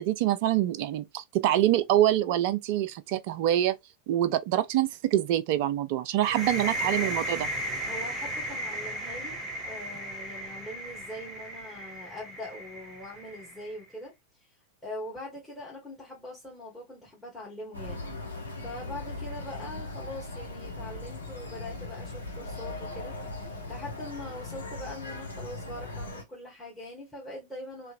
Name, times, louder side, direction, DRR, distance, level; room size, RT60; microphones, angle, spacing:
voice 1, 0.0-3.8 4.1-7.5, right 12 dB, 45° right, 0.4 m, -25 dB
sound 1, 6.2-13.8, equal, 25° right, 1.1 m, -35 dB
voice 2, 6.3-6.7 7.5-9.4 9.6-14.5 14.8-18.0 18.6-27.9, left 1 dB, 5° left, 1.4 m, -42 dB
sound 2, 17.7-26.2, left 2 dB, 75° left, 0.9 m, -39 dB
3.2 x 2.8 x 2.5 m
figure-of-eight pair, 90°, 0 cm